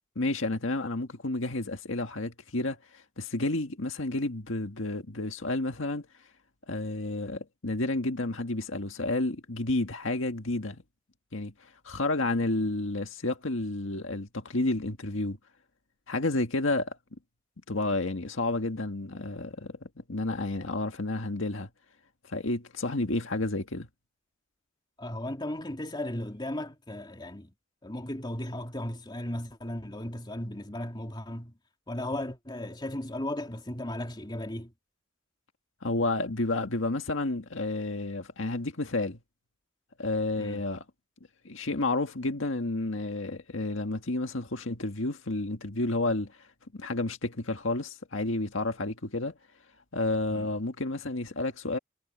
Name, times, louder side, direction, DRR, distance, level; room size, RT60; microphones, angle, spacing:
voice 1, 0.1-6.1 6.7-10.8 11.3-15.4 16.1-17.0 17.7-21.7 22.3-23.9 35.8-39.2 40.0-40.8 41.4-46.5 46.7-49.3 49.9-51.8, left 2 dB, 75° left, 1.8 m, -31 dB
voice 2, 25.0-27.5 27.8-31.5 31.9-34.7 40.4-40.6 50.3-50.5, left 1 dB, 20° left, 2.9 m, -36 dB
head